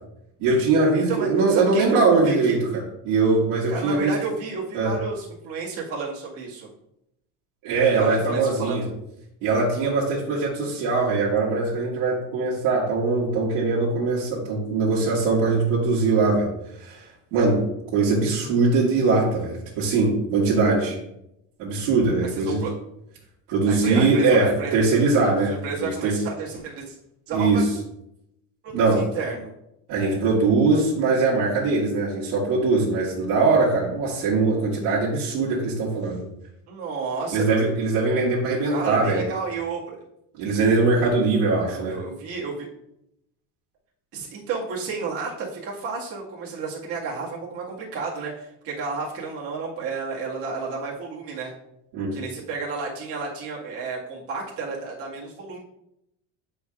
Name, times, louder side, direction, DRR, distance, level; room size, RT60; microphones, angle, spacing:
voice 1, 0.4-4.1 4.7-4.9 7.6-8.8 9.4-16.5 16.8-17.7 17.9-21.0 21.6-22.6 23.5-26.2 27.3-27.7 28.7-29.1 29.9-36.3 37.3-39.2 40.3-42.0 51.9-52.2, right 3 dB, 80° right, -8 dB, 1.8 m, -21 dB
voice 2, 1.1-2.6 3.7-6.7 7.8-8.8 22.2-22.7 23.7-24.7 25.5-27.0 27.3-27.6 28.6-29.5 36.7-37.5 38.7-40.0 41.7-42.7 44.1-51.5 52.1-55.6, right 4 dB, 45° right, -4 dB, 1.8 m, -31 dB
8.4 x 4.6 x 2.4 m, 0.82 s
cardioid pair, 165°, 32 cm